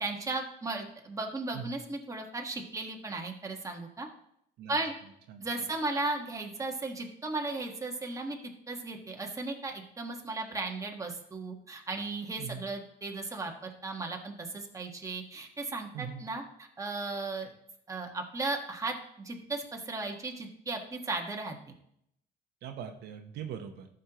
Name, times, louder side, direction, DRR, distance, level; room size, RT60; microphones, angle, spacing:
voice 1, 0.0-4.1 4.7-4.9 5.4-8.4 8.7-16.4 16.8-17.5 17.9-21.6, right 3 dB, 20° right, 1 dB, 1.5 m, -36 dB
voice 2, 22.6-23.9, right 8 dB, 75° right, 5 dB, 1.0 m, -41 dB
14.0 x 6.5 x 3.0 m, 0.74 s
cardioid pair, 110°, 17 cm